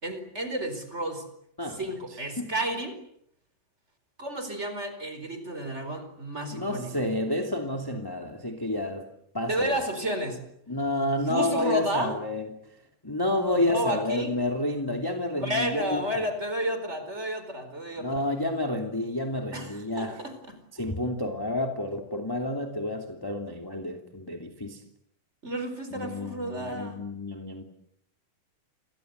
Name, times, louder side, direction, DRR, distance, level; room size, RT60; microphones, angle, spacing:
voice 1, 0.0-1.2 1.7-3.0 4.2-6.9 9.5-10.4 11.3-12.1 13.5-14.4 15.4-18.3 19.5-20.5 25.4-27.0, right 1 dB, 20° right, 9 dB, 4.6 m, -31 dB
voice 2, 6.5-9.1 9.3-9.8 10.7-12.5 13.0-16.2 18.0-20.2 20.7-24.8 25.9-27.6, left 1 dB, 5° left, 3 dB, 2.2 m, -30 dB
29.5 x 24.0 x 8.2 m, 0.72 s
omnidirectional pair, 4.0 m